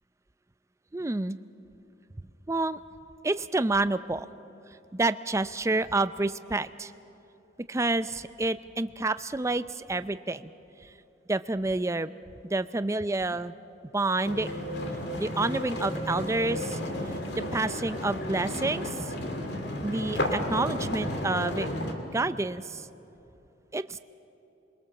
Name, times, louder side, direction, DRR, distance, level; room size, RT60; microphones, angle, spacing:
voice 1, 0.9-1.4 2.5-2.8 3.2-4.3 4.9-6.9 7.7-10.5 11.3-12.2 12.4-13.5 13.9-14.5 15.2-16.8 17.3-19.1 19.8-21.7 22.1-22.9 23.7-24.0, right 2 dB, 15° right, 13 dB, 0.4 m, -29 dB
sound 1, 14.2-21.9, left 1 dB, 60° left, 2.5 m, -32 dB
27.0 x 22.0 x 7.1 m, 3.0 s
head